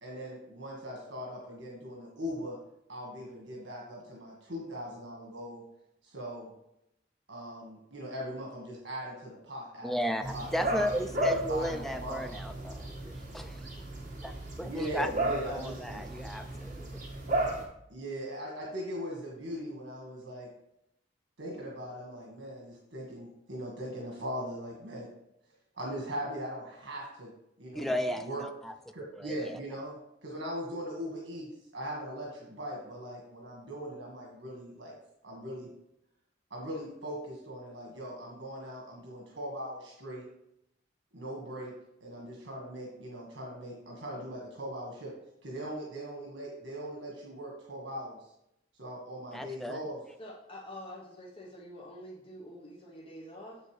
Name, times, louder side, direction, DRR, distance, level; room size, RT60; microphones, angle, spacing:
voice 1, 0.0-2.6 2.9-5.6 6.0-6.5 7.3-10.0 10.3-12.2 14.6-16.2 17.9-20.5 21.4-25.1 25.7-27.3 27.6-27.9 28.2-28.4 28.9-30.0 30.2-31.5 31.7-34.9 35.2-35.7 36.5-40.3 41.1-41.7 42.0-45.1 45.4-48.2 48.8-50.0, equal, 80° right, -2 dB, 1.6 m, -40 dB
voice 2, 9.8-13.6 14.2-14.3 14.6-16.9 27.7-28.7 29.2-29.5 49.3-49.8, equal, ahead, 7 dB, 0.4 m, -34 dB
sound 1, 10.2-17.6, right 1 dB, 45° right, 1.7 m, -35 dB
voice 3, 50.2-53.6, equal, 30° left, -3 dB, 1.0 m, -46 dB
7.5 x 6.7 x 3.2 m, 0.80 s
head